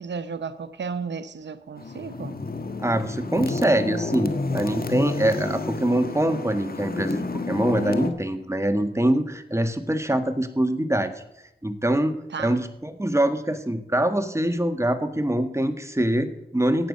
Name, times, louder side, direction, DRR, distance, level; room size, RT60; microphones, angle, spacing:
voice 1, 0.0-2.4 12.3-12.7, right 5 dB, 80° right, 0.8 m, -34 dB
sound 1, 1.8-8.1, left 3 dB, 55° left, 1.5 m, -30 dB
voice 2, 2.8-11.2 11.6-16.9, right 1 dB, 15° right, 1.8 m, -24 dB
15.0 x 9.2 x 5.4 m
cardioid pair, 45°, 18 cm